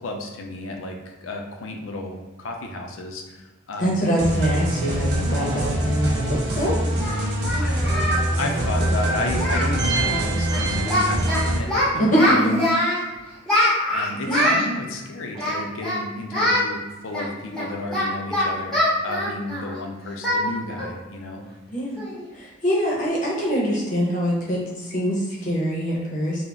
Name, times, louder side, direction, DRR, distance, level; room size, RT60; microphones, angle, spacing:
voice 1, 0.0-4.1 7.6-12.5 13.9-21.4, left 2 dB, 85° left, 2 dB, 0.5 m, -32 dB
voice 2, 3.8-6.8 12.0-12.6 14.3-14.6 21.7-22.0 22.3-26.4, equal, 40° left, -4 dB, 0.6 m, -24 dB
sound 1, 4.2-11.6, right 1 dB, 55° right, 0.5 m, -24 dB
Singing, 6.2-6.3 7.0-8.2 8.5-8.7 9.0-9.1 9.4-9.7 10.0-10.2 10.5-11.4 11.7-13.0 13.5-14.7 15.3-16.0 16.3-16.6 17.1-19.8 20.2-20.4 20.8-21.0 21.4-21.5 22.0-22.2, left 1 dB, 5° left, 0.7 m, -23 dB
2.3 x 2.0 x 3.8 m, 1.2 s
head